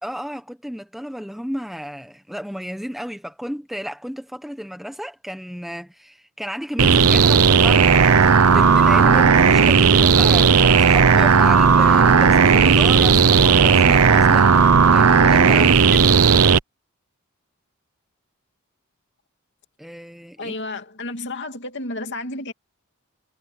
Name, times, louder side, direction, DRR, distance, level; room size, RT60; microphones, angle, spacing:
voice 1, 0.0-14.6 14.9-16.1 19.8-20.6, equal, ahead, 1.3 m, -33 dB
sound 1, 6.8-16.6, right 5 dB, 80° right, 0.8 m, -14 dB
voice 2, 20.4-22.5, left 2 dB, 55° left, 2.7 m, -31 dB
head